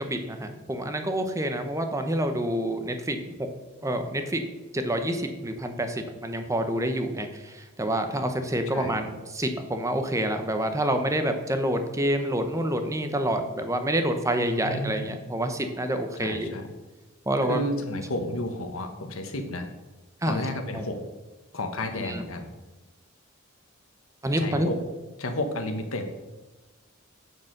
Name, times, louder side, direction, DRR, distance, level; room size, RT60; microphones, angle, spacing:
voice 1, 0.0-3.5 3.8-4.4 4.7-16.6 17.3-17.6 20.2-20.5 20.7-20.8 21.9-22.2 24.2-24.7, right 1 dB, 15° right, 7 dB, 0.9 m, -28 dB
voice 2, 14.6-15.1 16.2-16.7 17.5-19.7 20.3-21.0 21.5-22.5 24.4-24.8 25.2-26.2, left 1 dB, 85° left, 6 dB, 1.3 m, -32 dB
9.6 x 4.8 x 6.6 m, 1.2 s
head